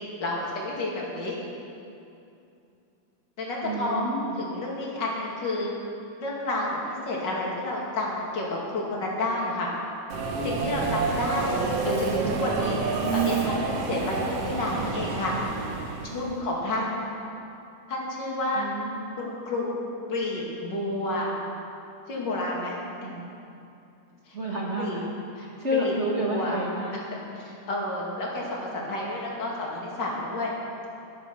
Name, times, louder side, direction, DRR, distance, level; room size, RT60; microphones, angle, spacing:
voice 1, 0.2-1.4 3.4-4.0 4.3-5.7 6.2-9.7 10.4-12.8 13.1-15.3 16.0-16.9 17.9-18.7 19.2-19.8 20.1-21.3 22.1-22.8 23.0-23.1 24.3-24.4 24.8-25.0 25.4-25.5 25.7-25.9 26.2-26.6 26.9-27.0 27.4-30.5, left 2 dB, 35° left, -4 dB, 2.7 m, -30 dB
voice 2, 3.6-4.4 16.1-16.8 18.5-19.0 23.0-23.3 24.3-25.1 25.4-27.0, equal, 35° right, -4 dB, 1.1 m, -30 dB
Subway metro underground, 10.1-16.3, right 4 dB, 60° right, 1.9 m, -28 dB
14.0 x 10.5 x 6.2 m, 2.7 s
omnidirectional pair, 3.5 m